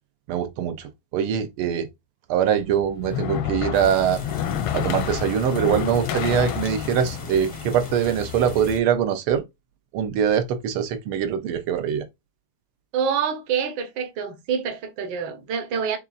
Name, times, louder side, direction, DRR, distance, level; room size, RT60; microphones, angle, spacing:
voice 1, 0.3-1.9 2.3-4.2 4.7-9.4 9.9-12.1, right 8 dB, 85° right, 1.6 m, -23 dB
sound 1, 2.6-8.8, left 10 dB, 80° left, 1.4 m, -30 dB
sound 2, 3.7-8.8, left 3 dB, 35° left, 0.5 m, -39 dB
voice 2, 12.9-16.0, right 7 dB, 65° right, 1.5 m, -26 dB
6.7 x 2.4 x 2.4 m
omnidirectional pair, 2.3 m